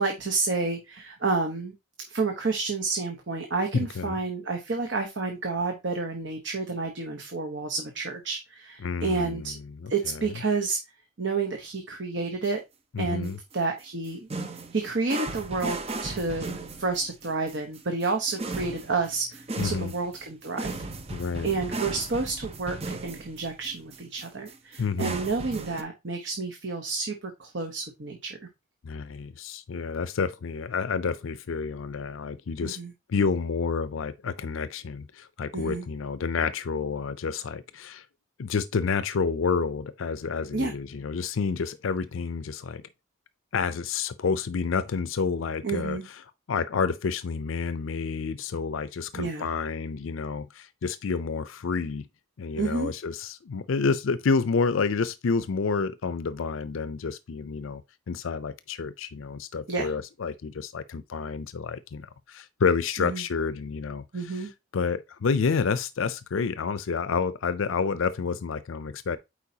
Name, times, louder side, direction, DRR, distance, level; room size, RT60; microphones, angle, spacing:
voice 1, 0.0-1.7 2.1-9.5 9.9-10.8 11.2-12.6 13.0-14.3 14.7-20.8 21.4-28.4 32.6-32.9 35.5-35.9 40.5-40.7 45.6-46.0 49.1-49.5 52.6-52.9 59.7-59.9 63.0-63.2 64.1-64.5, right 4 dB, 60° right, 1.0 m, -30 dB
voice 2, 3.7-4.2 8.8-10.3 12.9-13.4 19.6-19.9 21.1-21.6 24.8-25.2 28.8-32.8 33.1-38.0 38.4-42.8 43.5-46.2 46.5-52.1 52.4-57.8 58.1-69.2, left 5 dB, 75° left, 0.5 m, -29 dB
sound 1, 12.4-12.5 13.2-13.5 13.8-25.8, right 3 dB, 30° right, 0.7 m, -36 dB
8.6 x 4.5 x 2.8 m
head